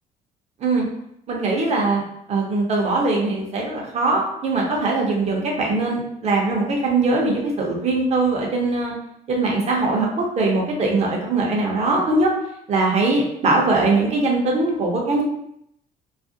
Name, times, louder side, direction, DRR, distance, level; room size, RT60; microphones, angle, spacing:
voice 1, 1.3-2.0 2.3-8.9 9.3-12.3 12.7-15.2, right 3 dB, 40° right, -1 dB, 0.7 m, -21 dB
2.4 x 2.0 x 2.6 m, 0.75 s
cardioid pair, 110°, 17 cm